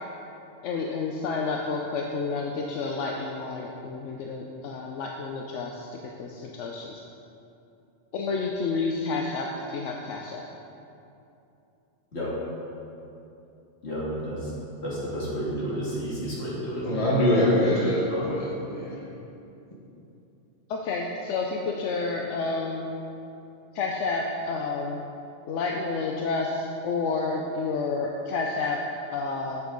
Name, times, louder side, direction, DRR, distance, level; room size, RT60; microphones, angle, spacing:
voice 1, 0.6-5.9 6.2-7.0 8.1-10.4 20.7-22.9 23.7-25.0 25.5-28.8 29.1-29.6, left 4 dB, 80° left, 0 dB, 0.9 m, -30 dB
voice 2, 13.8-14.5 14.8-17.2 18.1-18.4, equal, 60° left, -7 dB, 2.4 m, -31 dB
voice 3, 16.8-19.0, left 1 dB, 30° left, -4 dB, 1.3 m, -23 dB
8.2 x 7.0 x 3.8 m, 2.8 s
omnidirectional pair, 1.2 m